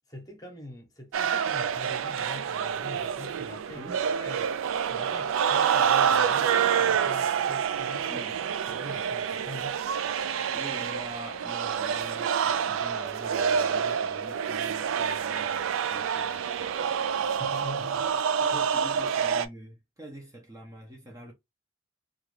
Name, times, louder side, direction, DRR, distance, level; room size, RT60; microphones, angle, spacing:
voice 1, 0.1-3.9 4.2-4.5 4.9-9.8 17.1-18.7, left 1 dB, 20° left, 0.9 m, -44 dB
sound 1, 1.1-19.5, right 7 dB, 80° right, 0.3 m, -27 dB
voice 2, 8.1-8.4 10.5-16.9 18.4-21.3, right 1 dB, 15° right, 0.7 m, -44 dB
2.4 x 2.4 x 3.1 m
head